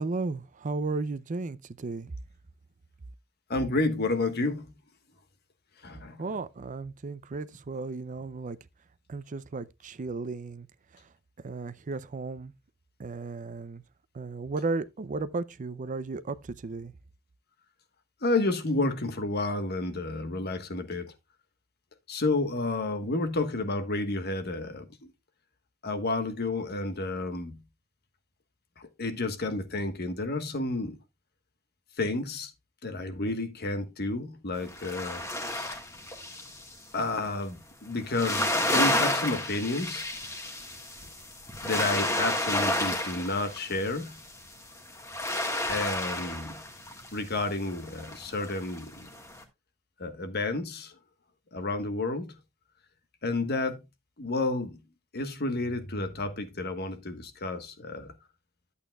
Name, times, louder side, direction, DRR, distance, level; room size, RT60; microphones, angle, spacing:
voice 1, 0.0-2.1 6.2-8.6 9.1-10.7 10.9-11.1 11.4-12.5 13.0-13.8 14.1-16.9, right 3 dB, 40° right, 0.5 m, -34 dB
voice 2, 3.5-4.7 5.8-6.2 18.2-21.1 22.1-25.1 25.8-27.6 28.8-31.0 32.0-32.5 32.8-35.8 36.9-40.1 41.6-44.2 45.7-46.6 47.1-49.1 50.0-51.0 51.5-52.3 53.2-53.8 54.2-54.8 55.1-58.1, left 2 dB, 50° left, 1.3 m, -31 dB
sound 1, 34.6-36.7 38.1-49.4, left 1 dB, 15° left, 1.5 m, -31 dB
11.5 x 8.3 x 2.3 m
head